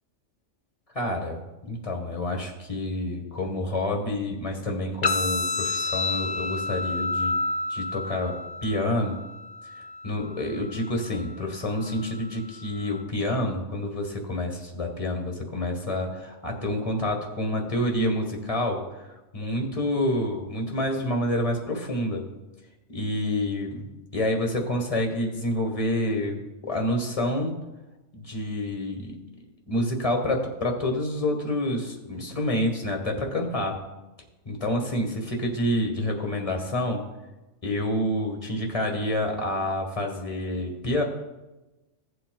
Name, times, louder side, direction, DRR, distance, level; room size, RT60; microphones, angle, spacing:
voice 1, 0.9-1.4 1.7-7.4 7.7-9.2 10.0-19.1 19.3-22.3 22.9-27.5 28.2-29.1 29.7-33.8 34.4-37.1 37.6-41.0, left 1 dB, 30° left, 2 dB, 1.5 m, -28 dB
sound 1, 5.0-13.0, left 3 dB, 45° left, 0.6 m, -31 dB
16.5 x 7.7 x 2.3 m, 1.1 s
omnidirectional pair, 1.3 m